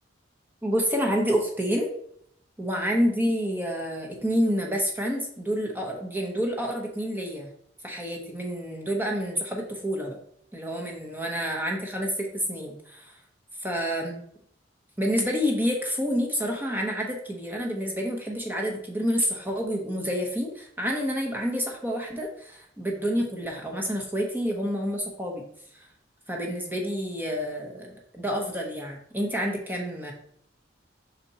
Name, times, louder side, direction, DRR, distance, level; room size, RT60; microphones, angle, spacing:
voice 1, 0.6-1.9 2.6-7.5 7.8-10.2 10.5-13.2 13.6-14.2 15.0-25.4 26.3-30.1, equal, 10° right, 0 dB, 1.0 m, -28 dB
5.6 x 4.3 x 4.1 m, 0.67 s
head